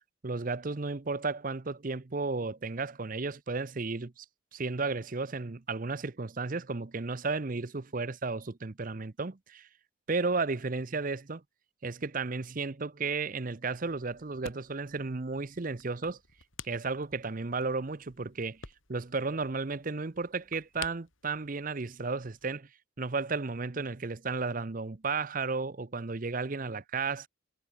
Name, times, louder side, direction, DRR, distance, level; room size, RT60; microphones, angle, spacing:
voice 1, 0.2-4.2 4.5-9.7 10.1-11.4 11.8-16.2 16.6-18.6 18.9-22.7 23.0-27.3, right 4 dB, 40° right, 0.7 m, -33 dB
sound 1, 13.7-22.5, left 6 dB, 75° left, 5.2 m, -51 dB
head